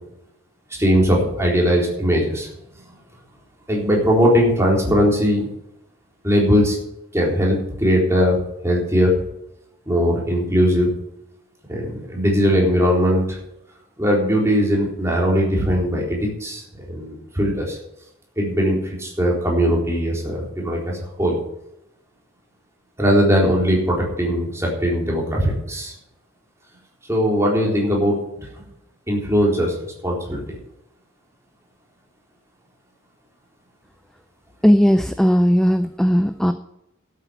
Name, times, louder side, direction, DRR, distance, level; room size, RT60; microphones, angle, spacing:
voice 1, 0.7-2.5 3.7-5.5 6.2-6.8 7.1-9.2 9.9-10.9 11.7-13.4 14.0-16.6 16.9-17.8 18.4-21.4 23.0-25.9 27.1-28.5 29.1-29.7 30.0-30.4, equal, 15° right, -3 dB, 3.9 m, -19 dB
voice 2, 34.6-36.5, equal, ahead, 9 dB, 0.4 m, -16 dB
12.5 x 8.6 x 6.9 m, 0.86 s
head